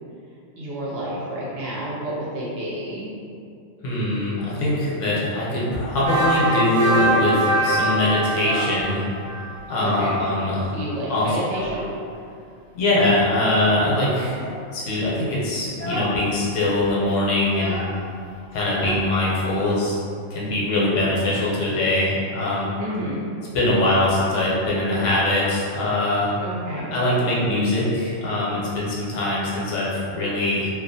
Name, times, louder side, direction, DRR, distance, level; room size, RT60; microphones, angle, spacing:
voice 1, 0.6-3.1 9.8-10.2 10.7-11.8 22.8-23.2 26.4-26.9, right 1 dB, 65° right, -6 dB, 0.7 m, -30 dB
voice 2, 3.8-9.0 9.7-10.8 11.1-11.3 12.7-14.4 14.7-17.8 18.5-20.0 20.3-22.7 23.5-26.3 26.9-30.7, left 1 dB, 75° left, -6 dB, 1.0 m, -22 dB
sound 1, 6.0-9.5, right 1 dB, 40° right, 0.9 m, -22 dB
Child speech kid speaking, 8.2-9.2 9.5-10.3 10.6-10.7 11.1-12.2 12.8-13.3 14.2-14.7 15.1-15.3 15.7-16.2 16.5-16.6 16.8-19.6, left 1 dB, 15° left, 0.6 m, -34 dB
2.4 x 2.3 x 2.6 m, 2.4 s
omnidirectional pair, 1.3 m